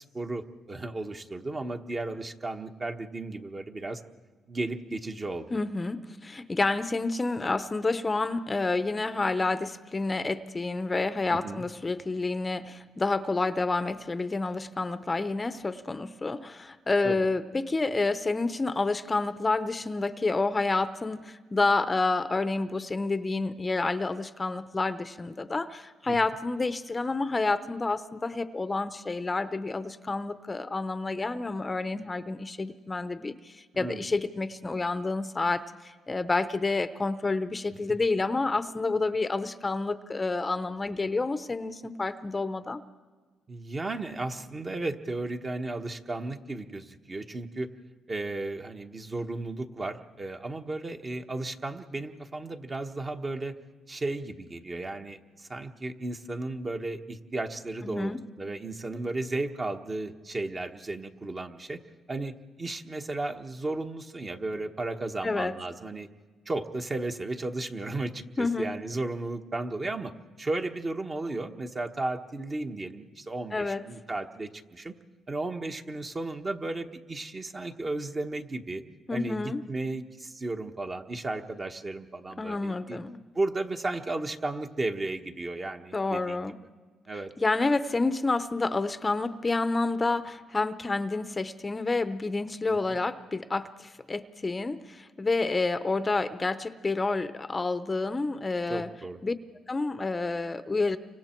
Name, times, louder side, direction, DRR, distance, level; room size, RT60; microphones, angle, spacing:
voice 1, 0.0-4.0 4.5-5.5 11.3-11.7 17.0-17.2 26.1-26.2 33.7-34.1 43.5-47.7 48.1-53.6 53.9-61.8 62.1-66.1 66.4-70.1 70.4-74.9 75.3-78.8 79.1-83.0 83.3-86.5 87.1-87.3 92.7-93.0 98.7-99.2, right 2 dB, 30° right, 5 dB, 1.3 m, -34 dB
voice 2, 5.5-42.8 57.8-58.2 65.2-65.6 68.4-68.7 73.5-73.8 79.1-79.6 82.4-83.2 85.9-86.6 87.4-98.9 99.2-99.3 99.7-101.0, left 3 dB, 25° left, 12 dB, 0.7 m, -29 dB
30.0 x 25.0 x 4.5 m, 1.4 s
cardioid pair, 90°, 0 cm